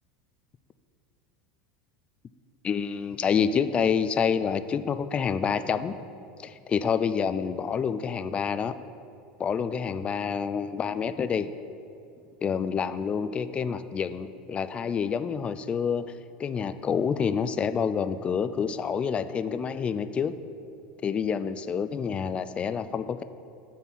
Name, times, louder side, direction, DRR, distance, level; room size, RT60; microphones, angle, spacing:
voice 1, 2.6-5.9 6.4-8.7 9.4-11.5 12.4-16.0 16.4-20.3 21.0-23.2, left 6 dB, 25° left, 12 dB, 0.4 m, -28 dB
10.5 x 4.3 x 7.4 m, 2.6 s
supercardioid pair, 130°, 4 cm